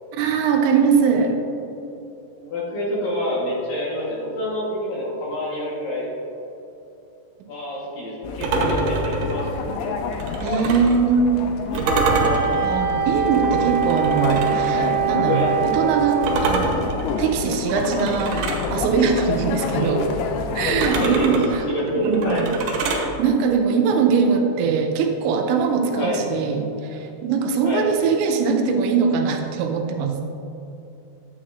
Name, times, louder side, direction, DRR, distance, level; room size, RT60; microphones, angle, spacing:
voice 1, 0.1-1.4 10.4-11.3 12.6-16.8 17.2-20.1 20.5-21.6 22.0-22.5 23.2-30.2, right 5 dB, 90° right, 4 dB, 3.0 m, -21 dB
voice 2, 2.5-6.1 7.5-10.1 15.3-15.5 19.7-20.1 21.0-21.3 21.7-22.5 25.9-26.2 27.6-27.9, left 1 dB, 60° left, -6 dB, 2.5 m, -27 dB
sound 1, 8.2-21.1, left 5 dB, 85° left, 2.4 m, -28 dB
sound 2, 8.4-11.0 11.7-14.7 16.2-18.7 20.7-23.1, right 3 dB, 70° right, 2.7 m, -26 dB
Wind instrument woodwind instrument, 11.8-16.6, right 8 dB, 50° right, 1.5 m, -23 dB
11.5 x 8.8 x 2.5 m, 2.8 s
omnidirectional pair, 5.3 m